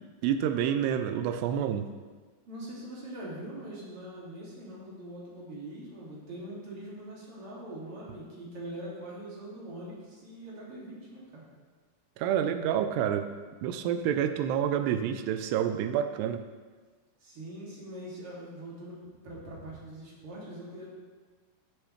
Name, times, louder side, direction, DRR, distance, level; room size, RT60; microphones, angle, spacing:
voice 1, 0.2-1.9 12.2-13.3 13.6-16.4, right 9 dB, 80° right, 7 dB, 2.5 m, -28 dB
voice 2, 2.5-11.4 17.2-20.9, right 1 dB, 40° right, -6 dB, 2.8 m, -43 dB
15.0 x 6.6 x 3.2 m, 1.4 s
omnidirectional pair, 5.0 m